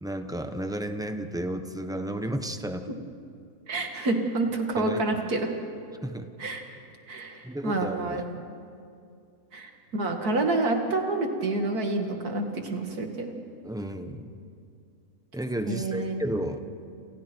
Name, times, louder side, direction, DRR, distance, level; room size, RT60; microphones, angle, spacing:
voice 1, 0.0-2.9 4.8-5.0 6.0-6.3 7.4-8.5 13.6-14.3 15.3-16.7, right 1 dB, 5° right, 7 dB, 0.9 m, -32 dB
voice 2, 3.7-5.5 6.4-6.6 7.1-8.2 9.5-13.3 15.7-16.2, right 2 dB, 75° right, 3 dB, 2.6 m, -28 dB
29.0 x 28.5 x 4.6 m, 2.4 s
omnidirectional pair, 1.6 m